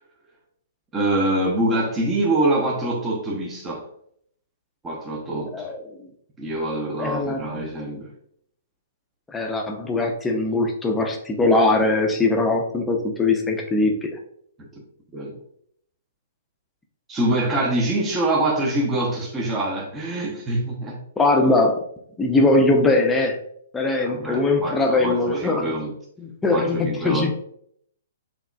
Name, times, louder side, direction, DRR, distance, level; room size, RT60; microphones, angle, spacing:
voice 1, 0.9-3.9 4.8-5.7 6.4-8.1 15.1-15.4 17.1-21.0 24.0-25.9 26.5-27.3, right 1 dB, 15° right, 0.8 m, -25 dB
voice 2, 5.5-6.0 7.0-7.6 9.3-14.1 21.2-21.8 22.2-23.4 23.7-25.7 26.2-27.3, left 2 dB, 10° left, 0.6 m, -21 dB
4.7 x 3.0 x 2.3 m
figure-of-eight pair, 120°, 0 cm